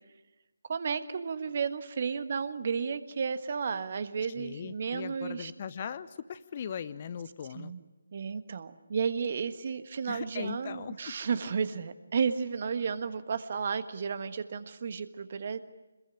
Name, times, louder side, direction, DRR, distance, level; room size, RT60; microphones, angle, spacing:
voice 1, 0.7-5.5 7.5-7.8 8.1-15.6, right 6 dB, 40° right, 11 dB, 1.4 m, -33 dB
voice 2, 4.4-7.7 10.1-11.0, left 8 dB, 30° left, 14 dB, 0.8 m, -39 dB
26.5 x 21.5 x 8.8 m, 1.1 s
figure-of-eight pair, 150°, 0 cm